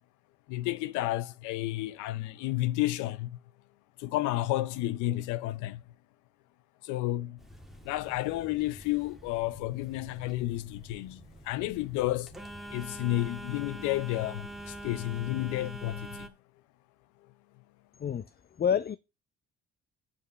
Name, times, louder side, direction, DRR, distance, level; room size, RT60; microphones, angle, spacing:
voice 1, 0.5-3.3 4.0-5.8 6.8-7.4 7.8-11.2 11.5-12.3 12.7-16.3, left 16 dB, 75° left, 0.7 m, -31 dB
Telephone, 7.4-16.3, right 1 dB, ahead, 1.8 m, -45 dB
voice 2, 18.6-19.0, left 8 dB, 30° left, 0.6 m, -27 dB
7.1 x 5.4 x 6.9 m
hypercardioid pair, 60°, 30 cm